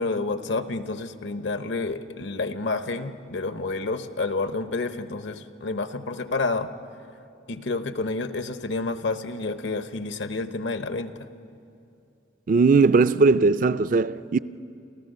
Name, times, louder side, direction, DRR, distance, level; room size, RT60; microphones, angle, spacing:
voice 1, 0.0-6.7 7.5-11.3, left 3 dB, 65° left, 0.9 m, -29 dB
voice 2, 12.5-14.4, right 4 dB, 45° right, 0.4 m, -19 dB
28.5 x 14.5 x 6.6 m
head